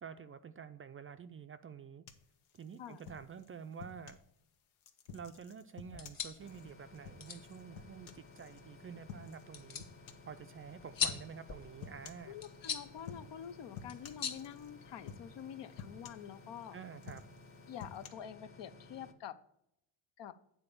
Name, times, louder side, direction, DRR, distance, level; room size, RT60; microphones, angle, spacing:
voice 1, 0.0-2.0 2.5-4.2 5.1-9.8 10.3-12.4 16.7-17.2, right 7 dB, 30° right, 10 dB, 0.4 m, -49 dB
sound 1, 2.1-4.3 4.8-8.6 9.1-9.5 9.8-10.4 11.1-11.3 11.8-12.3 13.0-13.5 13.7-14.7 15.1-15.5 15.8-16.6 17.0-18.1, left 7 dB, 85° left, 1.2 m, -51 dB
sound 2, 5.8-15.3, left 7 dB, 45° left, 1.1 m, -43 dB
sound 3, 6.4-19.1, left 3 dB, 30° left, 0.8 m, -57 dB
voice 2, 12.3-16.8 17.7-19.4 20.2-20.4, left 9 dB, 65° left, 13 dB, 0.7 m, -47 dB
8.9 x 4.3 x 6.7 m, 0.80 s
cardioid pair, 125°, 46 cm